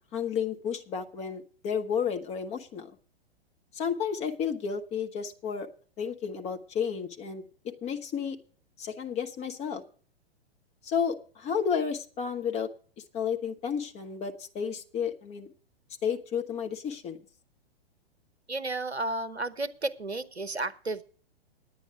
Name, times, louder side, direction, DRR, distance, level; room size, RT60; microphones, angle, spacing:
voice 1, 0.1-2.9 3.7-5.7 6.0-7.4 7.8-8.4 8.8-9.8 10.8-12.7 13.1-15.5 16.0-17.2, left 7 dB, 20° left, 5 dB, 1.0 m, -32 dB
voice 2, 18.5-21.0, right 2 dB, 85° right, 15 dB, 0.9 m, -32 dB
10.0 x 8.9 x 6.8 m, 0.43 s
figure-of-eight pair, 105°, 31 cm